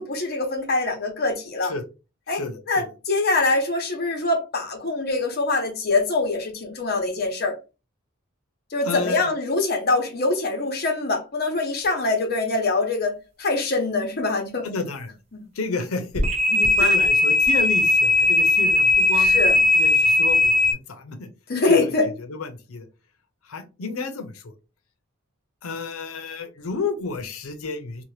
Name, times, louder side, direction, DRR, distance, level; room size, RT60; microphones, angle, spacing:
voice 1, 0.0-1.7 2.3-2.4 2.7-7.6 8.7-14.7 15.3-15.4 16.8-17.0 19.1-19.6 21.5-22.0, left 3 dB, 45° left, 0.8 m, -24 dB
voice 2, 2.3-2.9 8.8-9.3 14.6-15.1 15.5-16.2 16.5-19.4 19.7-21.3 21.7-21.9 22.2-22.9 23.5-24.5 25.6-28.0, left 4 dB, 85° left, 0.6 m, -31 dB
sound 1, 16.1-20.7, left 2 dB, 30° right, 0.8 m, -18 dB
2.8 x 2.1 x 3.1 m
head